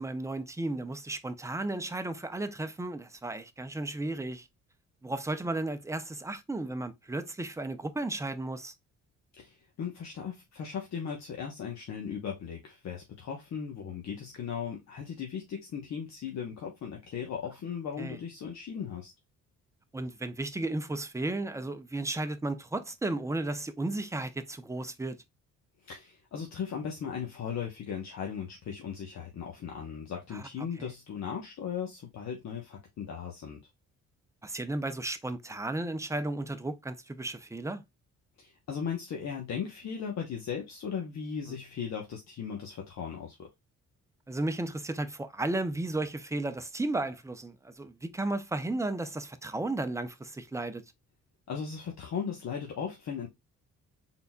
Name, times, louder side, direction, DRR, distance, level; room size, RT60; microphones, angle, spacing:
voice 1, 0.0-4.5 5.0-8.7 18.0-18.2 19.9-25.2 30.3-30.4 30.8-30.9 34.4-37.8 41.5-41.6 44.3-50.8, right 2 dB, 10° right, 0.6 m, -34 dB
voice 2, 9.4-19.1 25.8-33.6 38.4-43.5 51.5-53.3, left 7 dB, 65° left, 1.1 m, -37 dB
4.0 x 3.9 x 2.3 m
cardioid pair, 90°, 30 cm